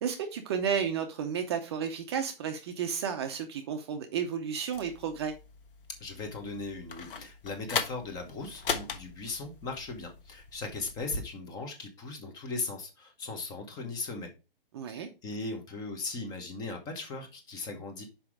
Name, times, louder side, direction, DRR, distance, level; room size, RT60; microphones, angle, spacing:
voice 1, 0.0-5.3 14.7-15.1, right 7 dB, 30° right, 0.7 m, -32 dB
sound 1, 4.7-11.2, left 5 dB, 65° left, 1.3 m, -39 dB
voice 2, 6.0-14.3 14.9-18.0, left 3 dB, 15° left, 1.0 m, -38 dB
5.7 x 5.1 x 4.8 m
hypercardioid pair, 150°, 29 cm